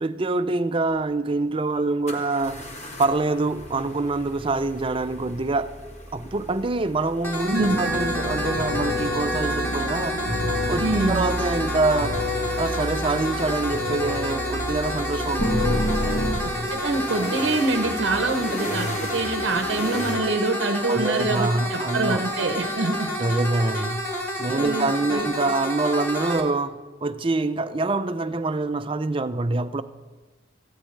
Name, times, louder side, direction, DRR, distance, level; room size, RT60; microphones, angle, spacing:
voice 1, 0.0-2.7 3.0-5.7 6.1-10.2 10.7-12.2 12.6-16.7 20.8-22.2 23.2-24.1 24.4-26.8 27.0-29.8, right 3 dB, 25° right, 0.5 m, -25 dB
sound 1, 2.1-20.2, equal, 35° left, 1.7 m, -38 dB
sound 2, 7.2-26.4, left 1 dB, 10° left, 1.6 m, -30 dB
sound 3, 7.5-16.3, left 1 dB, 55° left, 2.2 m, -28 dB
voice 2, 7.5-7.8 10.8-11.3 16.4-23.4 23.7-23.9 24.5-25.3, right 2 dB, 65° right, 0.8 m, -26 dB
19.0 x 14.5 x 3.2 m
head